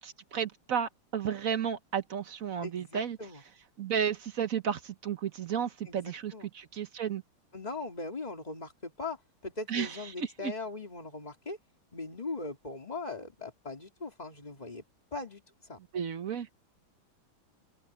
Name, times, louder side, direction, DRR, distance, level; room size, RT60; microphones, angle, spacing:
voice 1, 0.0-3.2 3.8-7.2 9.7-10.5 15.9-16.5, right 8 dB, 50° right, 1.1 m, -33 dB
voice 2, 2.6-3.4 5.9-6.5 7.5-9.2 9.4-11.6 11.9-14.8 15.1-15.4 15.7-15.8, left 3 dB, 20° left, 3.0 m, -40 dB
open air
omnidirectional pair, 2.3 m